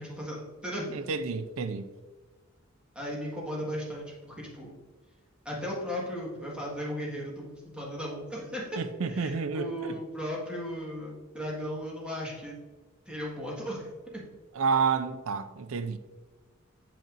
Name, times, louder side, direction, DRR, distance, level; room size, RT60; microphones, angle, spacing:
voice 1, 0.0-1.0 2.9-4.7 5.4-12.6 13.1-13.9 14.1-14.2, equal, 5° right, 1.6 m, -36 dB
voice 2, 0.9-1.9 8.8-10.0 14.5-16.0, right 5 dB, 75° right, 0.4 m, -30 dB
8.8 x 5.4 x 2.5 m
head